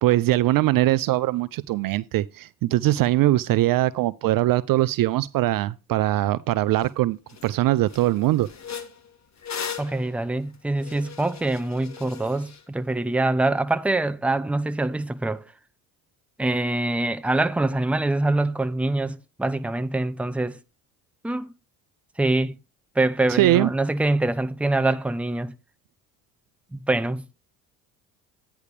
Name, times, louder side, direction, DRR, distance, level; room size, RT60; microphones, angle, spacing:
voice 1, 0.0-7.2 7.4-8.5 23.3-23.7, right 15 dB, 50° right, 0.5 m, -21 dB
sound 1, 6.8-6.9 7.3-7.5 7.9-12.6, left 7 dB, 35° left, 1.5 m, -38 dB
voice 2, 9.8-15.4 16.4-20.6 21.2-21.5 22.2-22.5 23.0-25.5 26.7-27.2, right 2 dB, 5° right, 0.7 m, -24 dB
9.5 x 3.5 x 6.6 m
hypercardioid pair, 65°, 46 cm